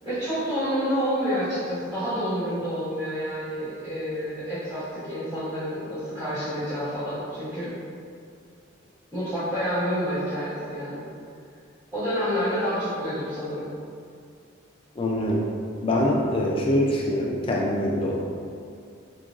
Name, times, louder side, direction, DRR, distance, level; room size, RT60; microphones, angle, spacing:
voice 1, 0.0-7.7 9.1-11.0 11.9-13.7, equal, 10° right, -18 dB, 1.4 m, -28 dB
voice 2, 15.0-15.4 15.8-18.2, left 1 dB, 25° left, -2 dB, 0.4 m, -24 dB
3.7 x 3.0 x 2.4 m, 2.3 s
head